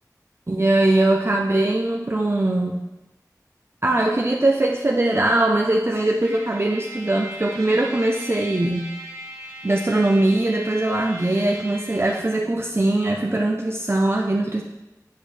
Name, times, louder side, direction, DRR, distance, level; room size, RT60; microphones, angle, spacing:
voice 1, 0.5-2.8 3.8-8.9 9.6-14.6, right 2 dB, 40° right, 0 dB, 0.5 m, -21 dB
Trumpet, 6.2-12.3, right 1 dB, 60° right, 1.8 m, -38 dB
8.3 x 4.5 x 3.3 m, 0.97 s
wide cardioid pair, 40°, 7 cm